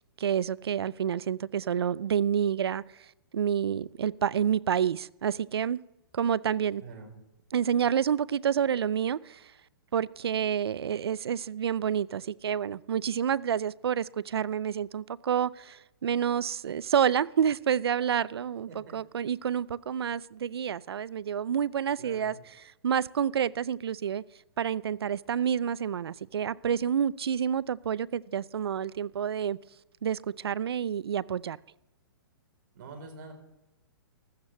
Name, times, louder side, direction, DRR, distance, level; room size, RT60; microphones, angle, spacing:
voice 1, 0.2-2.8 3.3-5.8 6.1-6.8 7.5-9.4 9.9-22.6 22.8-24.2 24.6-29.6 30.0-31.6, right 8 dB, 90° right, 0.4 m, -28 dB
voice 2, 6.8-7.1 18.7-18.9 22.0-22.4 32.7-33.3, right 4 dB, 55° right, 4.0 m, -45 dB
15.5 x 13.0 x 3.3 m
hypercardioid pair, 145°, 13 cm